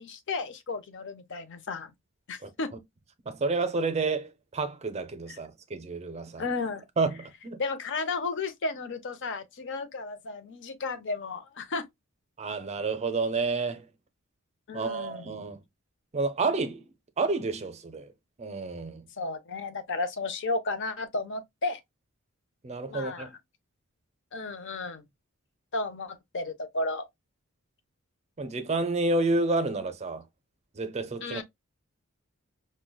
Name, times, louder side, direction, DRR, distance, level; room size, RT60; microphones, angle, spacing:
voice 1, 0.0-1.9 2.3-2.7 5.3-5.4 6.4-6.8 7.6-11.8 14.7-15.5 19.2-21.8 22.9-23.3 24.3-25.0 25.7-27.0 31.2-31.4, left 3 dB, 55° left, 0.6 m, -33 dB
voice 2, 3.3-6.4 7.0-7.6 12.4-13.9 14.7-15.6 16.1-16.8 17.2-18.1 18.4-19.0 22.6-23.3 28.4-30.2 30.7-31.4, right 3 dB, 30° right, 0.5 m, -29 dB
4.7 x 2.2 x 2.2 m
head